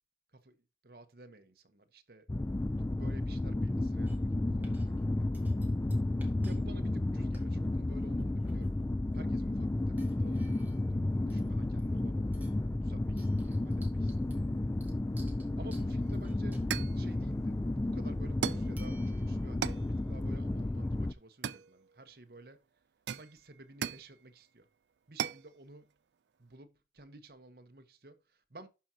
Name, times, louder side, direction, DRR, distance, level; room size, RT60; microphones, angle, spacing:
voice 1, 0.3-2.3 2.7-5.3 6.4-8.8 9.1-12.4 12.8-14.4 15.6-16.6 16.9-22.6 23.1-24.7 25.1-25.9 26.4-28.7, right 2 dB, 60° right, 1.1 m, -54 dB
sound 1, 2.3-21.1, left 2 dB, 15° left, 0.3 m, -32 dB
sound 2, 4.1-4.4 4.6-5.0 5.3-6.6 6.9-7.0 7.3-7.5 8.2-8.8 9.1-9.4 10.0-10.9 11.3-12.0 12.3-12.7 13.2-17.2 18.8-19.6, right 3 dB, 10° right, 1.7 m, -59 dB
sound 3, 16.0-16.1 16.7-17.0 18.4-18.7 19.6-19.9 21.4-22.1 23.1-24.1 25.2-25.5, right 7 dB, 80° right, 0.5 m, -37 dB
11.5 x 5.0 x 2.9 m
head